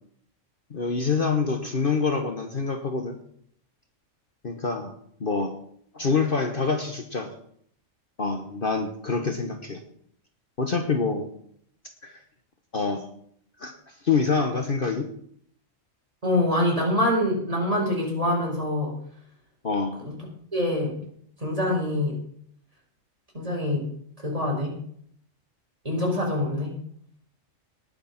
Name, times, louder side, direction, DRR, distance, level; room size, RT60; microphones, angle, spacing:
voice 1, 0.7-3.2 4.4-4.9 5.2-5.5 5.9-7.3 8.2-9.8 10.6-11.3 12.0-12.2 12.7-13.1 13.6-15.1 19.6-20.0, left 4 dB, 45° left, 5 dB, 1.3 m, -26 dB
voice 2, 16.2-18.9 20.0-20.1 20.5-20.9 21.4-22.2 23.3-23.8 24.2-24.7 25.8-26.7, left 1 dB, 25° right, -2 dB, 4.7 m, -25 dB
19.0 x 6.7 x 5.8 m, 0.65 s
omnidirectional pair, 1.3 m